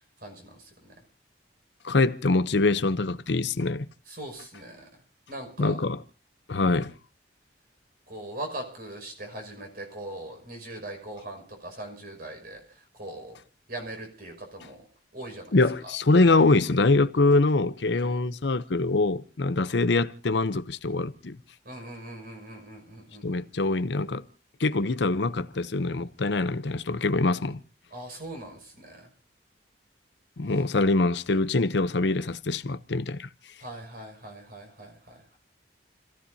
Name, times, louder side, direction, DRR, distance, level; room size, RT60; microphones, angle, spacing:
voice 1, 0.2-0.9 4.1-4.8 5.3-5.8 6.6-6.8 8.1-12.6 12.9-13.4 13.7-14.8 15.1-15.5 17.9-18.2 21.6-23.4 27.9-29.1 33.6-35.2, right 1 dB, 50° right, 5.9 m, -40 dB
voice 2, 1.8-3.9 5.6-6.0 6.5-6.9 15.5-21.4 23.2-24.2 24.6-27.6 30.4-33.3, left 3 dB, 65° left, 0.7 m, -24 dB
29.5 x 15.5 x 2.8 m
head